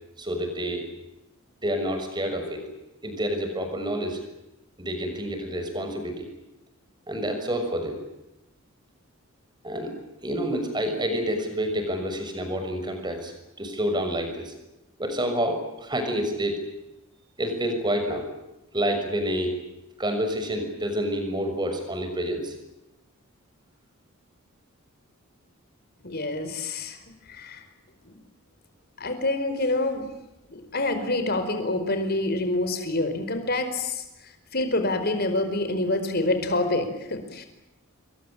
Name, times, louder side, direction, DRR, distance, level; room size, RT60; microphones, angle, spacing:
voice 1, 0.2-0.8 1.6-2.6 3.0-4.2 4.8-6.3 7.1-8.0 9.6-9.9 10.2-14.5 15.0-16.6 17.4-18.3 18.7-19.5 20.0-22.5, equal, 20° right, 6 dB, 6.3 m, -28 dB
voice 2, 26.0-27.0 27.3-27.6 28.0-28.2 29.0-30.1 30.5-37.4, left 2 dB, 50° left, 8 dB, 4.8 m, -27 dB
28.0 x 23.0 x 8.9 m, 0.94 s
head